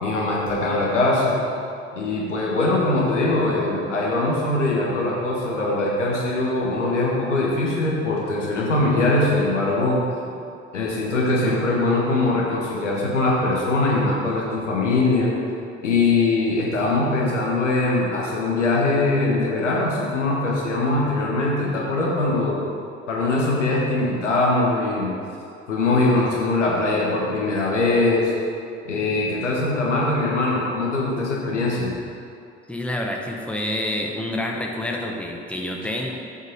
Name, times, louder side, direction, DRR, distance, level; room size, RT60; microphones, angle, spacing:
voice 1, 0.0-1.4 2.0-10.0 10.7-15.3 15.8-22.6 23.1-25.1 25.7-28.3 28.9-31.9, left 2 dB, 80° left, -3 dB, 1.4 m, -22 dB
voice 2, 32.7-36.2, left 1 dB, 5° left, 0 dB, 1.2 m, -28 dB
8.0 x 5.3 x 6.5 m, 2.5 s
figure-of-eight pair, 50°, 36 cm